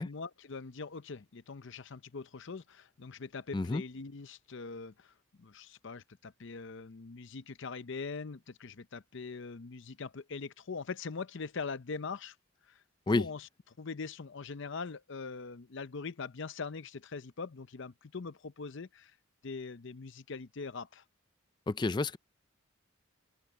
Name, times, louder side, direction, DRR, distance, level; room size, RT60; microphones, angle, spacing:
voice 1, 0.0-12.4 12.7-12.8 13.1-13.5 13.8-19.1 19.4-21.0, left 4 dB, 55° left, 0.6 m, -42 dB
voice 2, 21.7-22.2, left 2 dB, 20° left, 0.3 m, -29 dB
open air
head